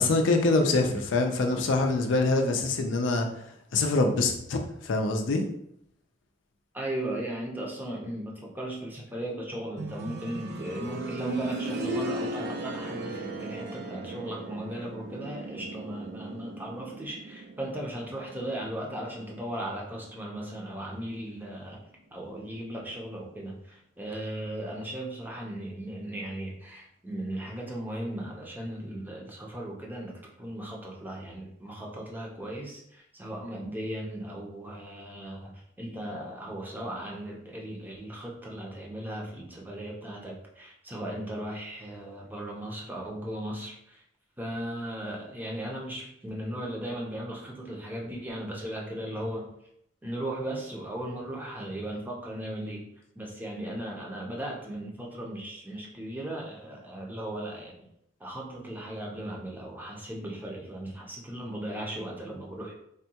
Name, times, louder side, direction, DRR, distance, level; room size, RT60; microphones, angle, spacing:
voice 1, 0.0-3.3 3.7-5.4, left 3 dB, 80° left, 4 dB, 0.4 m, -24 dB
voice 2, 6.7-21.8 22.1-44.0 44.4-49.5 50.0-52.9 53.2-57.9 58.2-62.8, right 1 dB, 10° right, -2 dB, 0.6 m, -37 dB
sound 1, 9.8-20.5 21.9-22.0, right 2 dB, 60° right, 0.4 m, -37 dB
3.5 x 2.2 x 2.8 m, 0.73 s
head